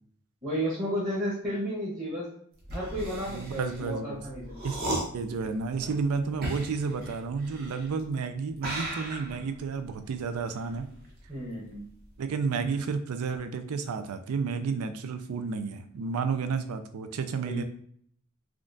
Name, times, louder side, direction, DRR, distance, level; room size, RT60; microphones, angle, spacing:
voice 1, 0.4-2.3 2.7-4.6 11.3-11.8 17.4-17.6, equal, 20° right, -6 dB, 0.9 m, -32 dB
sound 1, 2.6-8.1 8.5-11.5 11.7-12.2, right 1 dB, 45° right, 0.8 m, -37 dB
voice 2, 3.3-4.2 4.6-10.9 12.2-17.6, right 5 dB, 85° right, 9 dB, 0.4 m, -31 dB
3.6 x 2.4 x 2.5 m, 0.64 s
head